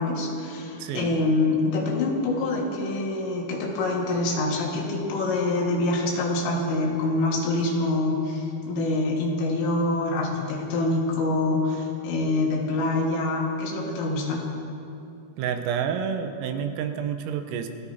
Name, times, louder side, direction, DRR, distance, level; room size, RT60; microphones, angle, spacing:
voice 1, 0.0-14.5, left 2 dB, 75° left, -1 dB, 4.3 m, -25 dB
voice 2, 0.8-1.2 15.4-17.7, right 8 dB, 90° right, 7 dB, 3.5 m, -29 dB
25.5 x 17.0 x 2.8 m, 2.7 s
omnidirectional pair, 6.0 m